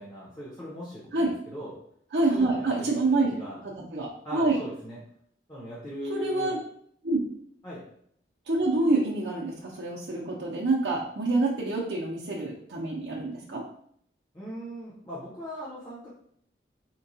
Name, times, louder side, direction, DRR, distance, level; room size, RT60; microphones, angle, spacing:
voice 1, 0.0-1.8 2.3-3.0 3.3-3.6 4.2-5.0 5.5-6.6 7.6-7.8 14.3-16.1, equal, 20° left, -8 dB, 0.8 m, -39 dB
voice 2, 2.1-3.4 3.6-4.6 6.1-6.6 7.0-7.2 8.5-13.6, right 2 dB, 70° right, -5 dB, 0.6 m, -27 dB
4.4 x 2.2 x 2.7 m, 0.66 s
head